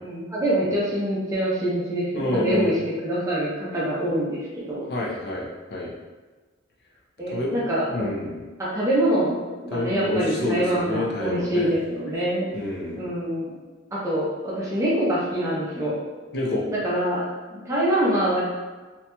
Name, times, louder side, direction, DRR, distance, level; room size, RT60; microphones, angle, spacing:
voice 1, 0.0-2.7 3.0-4.8 7.2-8.0 8.6-9.4 9.6-12.5 13.0-13.6 13.9-16.0 16.7-17.3 17.5-18.4, right 1 dB, 15° right, -7 dB, 0.6 m, -25 dB
voice 2, 2.1-2.7 4.9-5.9 7.3-7.6 7.9-8.4 9.7-11.8 12.5-13.1 16.3-16.7, left 2 dB, 55° left, -3 dB, 0.5 m, -28 dB
2.8 x 2.7 x 2.2 m, 1.3 s
head